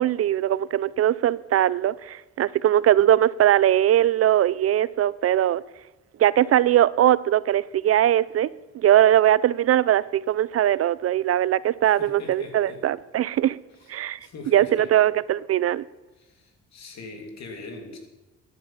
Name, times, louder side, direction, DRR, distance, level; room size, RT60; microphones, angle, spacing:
voice 1, 0.0-5.6 6.2-8.5 8.7-13.6 13.9-14.2 14.5-15.8, right 12 dB, 50° right, 0.4 m, -20 dB
voice 2, 11.9-12.8 13.8-13.9 14.2-14.9 16.2-18.0, left 3 dB, 60° left, 3.0 m, -41 dB
13.0 x 9.3 x 5.7 m
cardioid pair, 90°, 30 cm